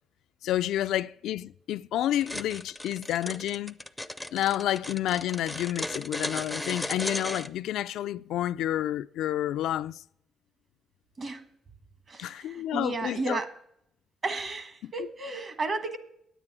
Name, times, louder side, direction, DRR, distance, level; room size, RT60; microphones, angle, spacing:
voice 1, 0.4-3.8 4.3-10.0 12.2-13.4 14.8-14.9, left 12 dB, 90° left, 0.3 m, -30 dB
sound 1, 2.2-7.5, left 1 dB, ahead, 0.5 m, -36 dB
voice 2, 12.1-13.5 14.2-16.0, right 3 dB, 40° right, 1.3 m, -33 dB
9.8 x 8.9 x 6.0 m
cardioid pair, 130°, 0 cm